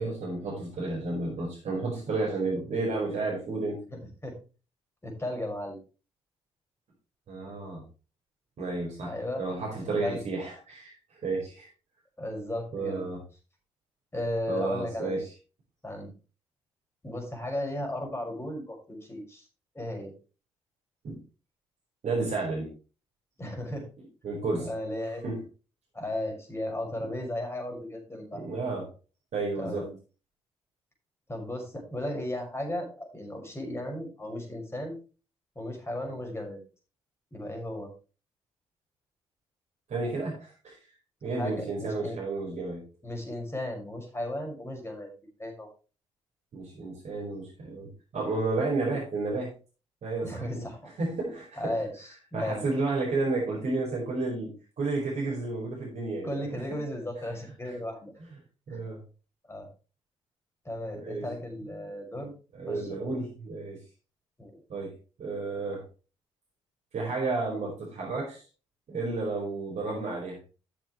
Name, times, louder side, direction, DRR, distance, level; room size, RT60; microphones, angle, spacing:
voice 1, 0.0-3.8 7.3-7.8 8.6-10.9 11.2-11.7 12.7-13.2 14.5-15.3 21.0-21.2 22.0-22.7 24.2-24.7 25.2-25.4 27.0-27.1 28.3-28.9 29.3-29.8 39.9-40.8 41.2-42.9 46.5-49.5 50.0-50.7 51.0-51.8 52.3-56.6 58.7-59.0 60.9-61.3 62.5-63.8 64.7-65.8 66.9-68.4 68.9-70.5, right 3 dB, 55° right, -3 dB, 4.9 m, -32 dB
voice 2, 3.9-4.3 5.0-5.8 9.0-9.4 10.0-10.2 12.2-13.1 14.1-15.2 15.8-16.1 17.0-19.5 19.7-20.1 23.4-23.8 24.6-25.2 25.9-28.4 29.6-29.9 31.3-35.0 35.6-36.6 37.3-37.9 41.4-42.2 43.0-45.1 45.4-45.7 50.2-50.9 51.6-52.6 56.2-58.1 58.7-58.8 59.5-59.7 60.6-62.3 62.7-63.1 64.4-64.6 69.9-70.0, left 1 dB, 20° left, 2 dB, 6.0 m, -35 dB
13.5 x 7.5 x 3.2 m, 0.34 s
figure-of-eight pair, 40°, 14 cm